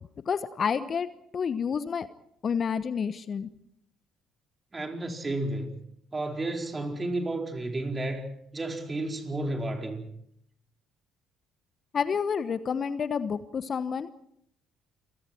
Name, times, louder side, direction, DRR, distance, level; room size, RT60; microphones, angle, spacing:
voice 1, 0.3-2.1 2.4-3.5 11.9-14.1, left 6 dB, 45° left, 14 dB, 1.0 m, -29 dB
voice 2, 4.7-5.8 6.1-8.3 8.5-10.1, right 2 dB, 25° right, 3 dB, 4.8 m, -32 dB
28.5 x 23.5 x 4.6 m, 0.72 s
hypercardioid pair, 50°, 0 cm